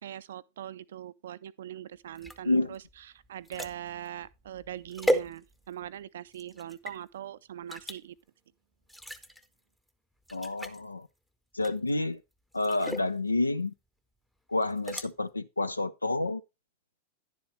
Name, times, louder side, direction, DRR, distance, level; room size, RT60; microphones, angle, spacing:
voice 1, 0.0-2.8 3.1-8.2, right 11 dB, 60° right, 0.4 m, -41 dB
sound 1, 2.1-5.9 6.3-7.0 7.7-8.0 8.9-9.5 9.9-10.0 10.3-10.8 11.6-12.0 12.5-13.1 14.6-15.1, equal, 5° left, 0.8 m, -35 dB
voice 2, 2.4-2.8 10.3-11.1 11.5-12.2 12.5-13.7 14.5-16.4, left 2 dB, 80° left, 0.5 m, -29 dB
10.5 x 7.6 x 3.2 m
figure-of-eight pair, 90°, 0 cm